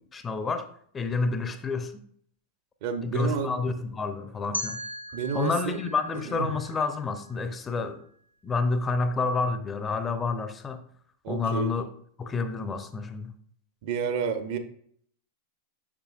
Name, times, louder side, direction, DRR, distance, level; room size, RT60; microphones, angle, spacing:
voice 1, 0.1-0.7 0.9-2.0 3.0-4.8 5.3-8.0 8.4-10.8 11.3-11.9 12.2-13.3, left 4 dB, 20° left, 0.6 m, -29 dB
voice 2, 2.8-3.5 5.1-5.8 6.3-6.5 11.2-11.7 13.8-14.6, right 6 dB, 50° right, 0.8 m, -30 dB
sound 1, 4.5-7.5, equal, 90° right, 0.5 m, -38 dB
7.4 x 6.8 x 2.5 m
figure-of-eight pair, 90°, 0 cm